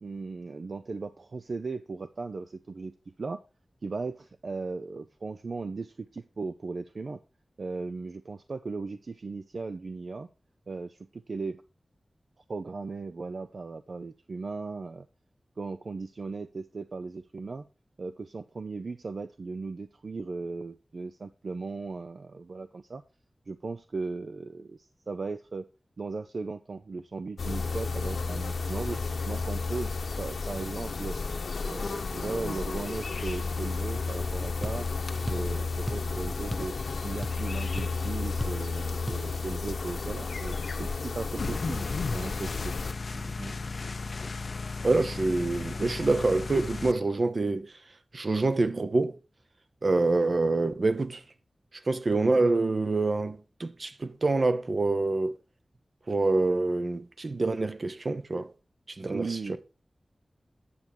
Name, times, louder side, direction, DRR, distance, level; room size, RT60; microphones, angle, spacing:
voice 1, 0.0-2.9 3.2-3.4 3.8-7.2 7.6-10.3 10.7-11.6 12.5-15.1 15.6-17.7 18.0-23.0 23.5-25.7 26.0-31.2 31.6-34.9 35.3-36.7 37.0-42.7 43.1-43.5 59.1-59.6, right 3 dB, 65° right, 0.5 m, -37 dB
sound 1, 27.4-42.9, left 4 dB, 90° left, 1.1 m, -32 dB
sound 2, 34.6-34.8 35.3-35.5 35.9-36.1 36.5-36.7 37.0-37.5 37.8-37.9 38.4-38.6 39.1-39.2, equal, 5° left, 0.4 m, -35 dB
sound 3, 41.4-46.9, left 3 dB, 65° left, 0.5 m, -36 dB
voice 2, 44.8-47.7 48.1-49.2 49.8-51.2 51.9-55.3 56.1-58.5 59.0-59.4, right 3 dB, 50° right, 0.8 m, -26 dB
9.5 x 6.8 x 4.5 m
wide cardioid pair, 100°, 0 cm